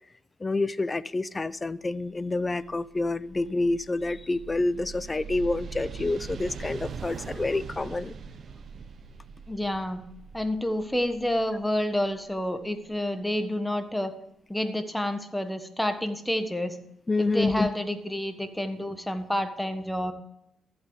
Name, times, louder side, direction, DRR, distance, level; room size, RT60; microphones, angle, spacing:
voice 1, 0.4-8.1 17.1-17.7, left 2 dB, 20° left, 0.5 m, -28 dB
sound 1, 2.4-13.0, right 6 dB, 55° right, 1.0 m, -42 dB
voice 2, 9.5-10.0 10.3-14.1 14.5-16.8 17.2-20.1, left 1 dB, 5° left, 1.4 m, -29 dB
14.0 x 8.4 x 4.8 m
cardioid pair, 90°, 0 cm